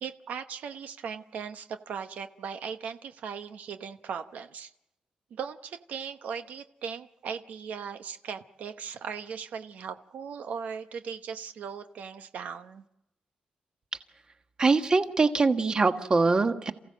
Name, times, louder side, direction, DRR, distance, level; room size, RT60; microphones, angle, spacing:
voice 1, 0.0-4.7 5.3-12.8, right 6 dB, 80° right, 9 dB, 0.9 m, -38 dB
voice 2, 14.6-16.7, right 3 dB, 30° right, 8 dB, 1.4 m, -23 dB
28.5 x 15.5 x 7.5 m, 0.89 s
cardioid pair, 120°, 3 cm